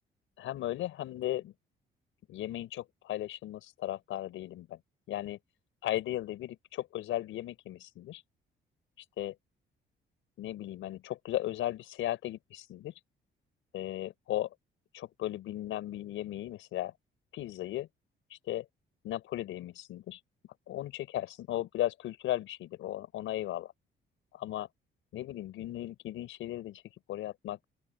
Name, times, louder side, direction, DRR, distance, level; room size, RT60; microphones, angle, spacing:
voice 1, 0.4-1.5 2.3-4.8 5.1-5.4 5.8-8.2 9.2-9.3 10.4-12.9 13.7-14.5 14.9-16.9 17.3-17.9 18.3-18.7 19.0-20.2 20.7-23.7 24.3-24.7 25.1-26.8 27.1-27.6, left 14 dB, 85° left, 5.5 m, -36 dB
open air
cardioid pair, 90°, 20 cm